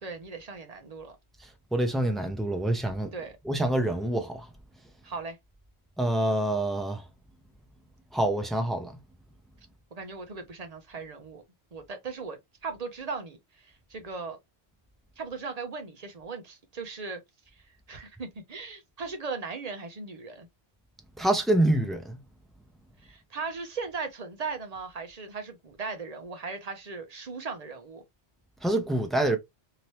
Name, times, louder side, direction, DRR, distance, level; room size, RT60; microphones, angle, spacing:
voice 1, 0.0-1.2 3.1-3.4 5.0-5.4 9.9-11.4 11.7-14.4 15.2-17.2 17.9-20.5 23.0-28.0, right 4 dB, 40° right, 0.7 m, -38 dB
voice 2, 1.7-3.1 3.5-4.4 6.0-7.0 8.1-8.9 21.2-22.2 28.6-29.4, right 1 dB, ahead, 0.3 m, -26 dB
2.9 x 2.8 x 3.0 m
omnidirectional pair, 1.1 m